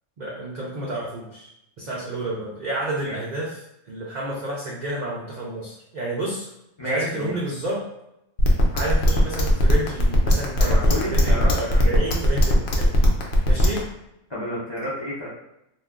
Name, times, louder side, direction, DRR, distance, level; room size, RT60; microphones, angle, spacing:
voice 1, 0.2-1.5 1.8-6.5 6.8-7.9 8.7-13.0 13.5-13.9, right 1 dB, 80° right, -3 dB, 0.4 m, -30 dB
voice 2, 6.8-7.4 10.6-11.9 14.3-15.3, left 1 dB, 35° left, -7 dB, 0.5 m, -30 dB
sound 1, 8.4-13.8, equal, 65° left, 0.7 m, -18 dB
2.4 x 2.2 x 3.5 m, 0.85 s
omnidirectional pair, 1.3 m